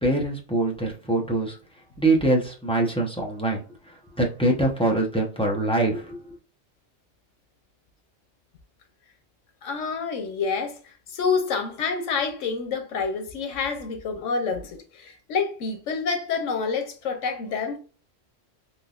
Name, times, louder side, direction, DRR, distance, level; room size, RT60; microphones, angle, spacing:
voice 1, 0.0-1.6 2.0-6.2, right 2 dB, 5° left, 0.6 m, -24 dB
voice 2, 9.6-17.8, left 5 dB, 90° left, 1.1 m, -28 dB
3.6 x 2.8 x 2.4 m
omnidirectional pair, 1.2 m